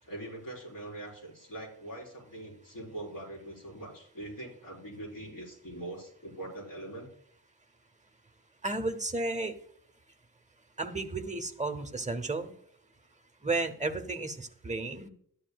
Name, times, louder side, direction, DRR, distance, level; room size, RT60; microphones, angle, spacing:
voice 1, 0.0-7.1, right 1 dB, 65° left, -2 dB, 4.3 m, -42 dB
voice 2, 8.6-9.5 10.8-12.5 13.4-15.1, right 2 dB, 20° right, 7 dB, 0.7 m, -33 dB
12.5 x 9.7 x 2.3 m, 0.64 s
wide cardioid pair, 160°, 36 cm